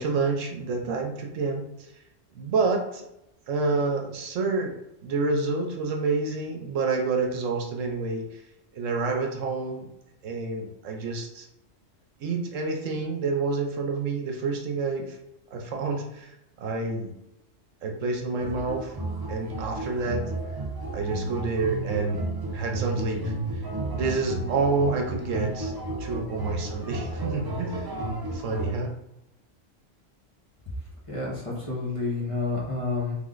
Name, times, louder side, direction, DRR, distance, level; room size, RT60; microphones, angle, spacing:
voice 1, 0.0-1.7 2.4-3.0 3.5-8.4 8.7-9.9 10.2-11.5 12.2-15.2 15.5-16.3 16.6-17.1 17.8-18.9 19.3-20.3 20.9-22.2 22.5-23.3 23.9-27.8 28.3-28.9, right 3 dB, 85° right, 2 dB, 1.1 m, -28 dB
sound 1, 18.4-28.7, right 2 dB, 35° right, 0.3 m, -32 dB
voice 2, 31.1-33.2, left 3 dB, 25° left, -6 dB, 1.3 m, -29 dB
3.6 x 3.1 x 3.8 m, 0.86 s
omnidirectional pair, 1.3 m